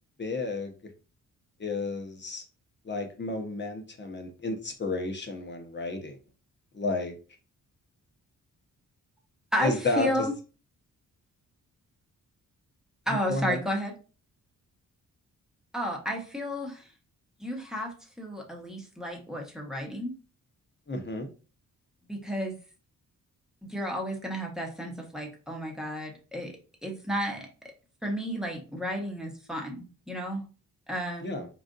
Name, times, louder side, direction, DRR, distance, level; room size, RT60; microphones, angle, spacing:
voice 1, 0.2-0.9 1.6-2.4 2.8-6.2 6.7-7.2 9.6-10.3 13.3-13.6 20.9-21.3 31.2-31.5, left 2 dB, 30° left, 4 dB, 0.9 m, -32 dB
voice 2, 9.5-10.3 13.1-13.9 15.7-16.9 17.4-20.1 22.1-22.6 23.6-27.5 28.0-30.4 30.9-31.4, equal, ahead, 0 dB, 1.1 m, -32 dB
4.9 x 2.6 x 2.5 m, 0.34 s
cardioid pair, 100°, 34 cm